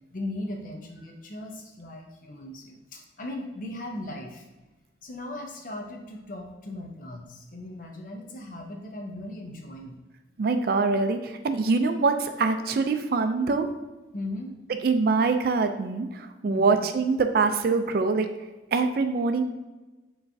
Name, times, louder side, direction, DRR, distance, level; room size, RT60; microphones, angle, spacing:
voice 1, 0.1-4.4 5.0-10.0 14.1-14.5 16.5-16.7, left 1 dB, 45° left, 2 dB, 0.6 m, -38 dB
voice 2, 10.4-13.7 14.8-18.3 18.7-19.4, right 4 dB, 55° right, 6 dB, 0.3 m, -24 dB
5.5 x 3.1 x 2.6 m, 1.1 s
head